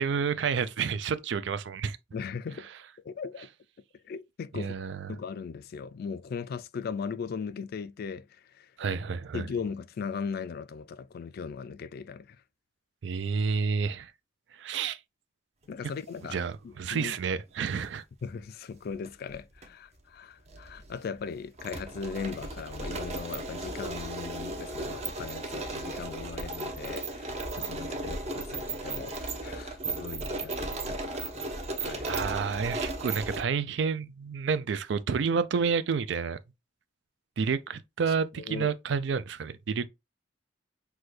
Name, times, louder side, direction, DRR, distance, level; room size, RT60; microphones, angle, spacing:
voice 1, 0.0-2.0 4.5-5.1 8.8-9.4 13.0-14.1 14.6-15.0 16.3-18.0 28.1-28.2 32.0-36.4 37.4-39.9, right 5 dB, 70° right, 0.4 m, -30 dB
voice 2, 2.1-2.7 3.0-3.5 4.0-4.7 5.1-8.7 9.3-12.4 15.7-16.4 16.6-17.2 18.2-32.1 38.4-38.7, left 5 dB, 55° left, 0.3 m, -38 dB
sound 1, 17.6-17.9 18.9-19.7 19.9-20.0 20.5-33.4, right 2 dB, 35° right, 0.8 m, -35 dB
6.0 x 2.3 x 3.2 m
head